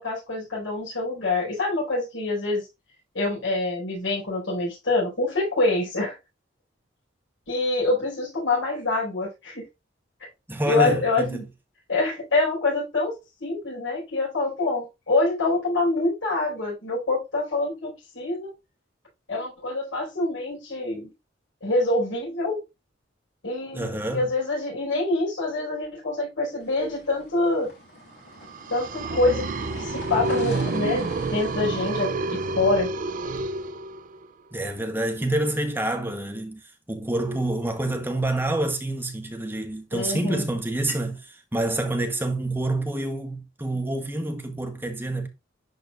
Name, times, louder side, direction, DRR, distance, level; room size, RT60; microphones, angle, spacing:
voice 1, 0.0-2.7 3.1-6.1 7.5-9.6 10.6-11.4 11.9-13.1 13.4-18.5 19.3-21.1 21.6-22.6 23.4-27.7 28.7-32.9 39.9-40.4, left 2 dB, 90° left, 5.0 m, -26 dB
voice 2, 10.5-11.5 23.7-24.3 34.5-36.6 36.9-45.3, right 1 dB, 10° right, 1.1 m, -27 dB
sound 1, 26.6-33.6, left 2 dB, 60° left, 2.8 m, -46 dB
sound 2, 28.4-34.3, right 2 dB, 45° right, 0.5 m, -29 dB
10.5 x 4.7 x 2.5 m
head